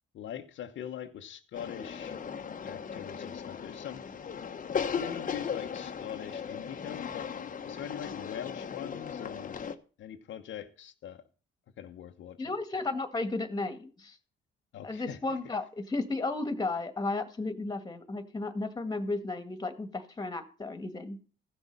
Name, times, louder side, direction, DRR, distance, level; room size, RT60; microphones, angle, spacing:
voice 1, 0.1-2.2 2.6-4.0 4.9-7.3 7.6-9.6 10.0-11.2 11.8-12.5 14.7-15.4, left 10 dB, 75° left, 1.1 m, -42 dB
sound 1, 1.5-9.8, left 7 dB, 40° left, 1.1 m, -37 dB
voice 2, 12.4-14.2 14.8-21.2, left 3 dB, 20° left, 1.9 m, -34 dB
14.5 x 6.3 x 5.4 m
cardioid pair, 90°, 20 cm